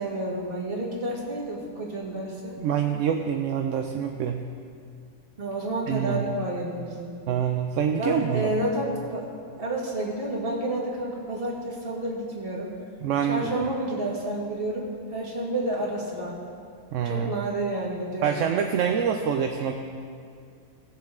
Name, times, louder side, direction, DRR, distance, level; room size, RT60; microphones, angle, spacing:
voice 1, 0.0-2.6 5.4-7.1 8.0-9.3 9.6-12.7 13.2-16.3 17.0-18.4, right 1 dB, 40° right, -4 dB, 2.0 m, -30 dB
voice 2, 2.6-4.4 5.9-6.3 7.3-8.5 13.0-13.5 16.9-17.3 18.2-19.7, right 8 dB, 70° right, 4 dB, 0.9 m, -26 dB
17.5 x 7.5 x 3.7 m, 2.3 s
omnidirectional pair, 1.4 m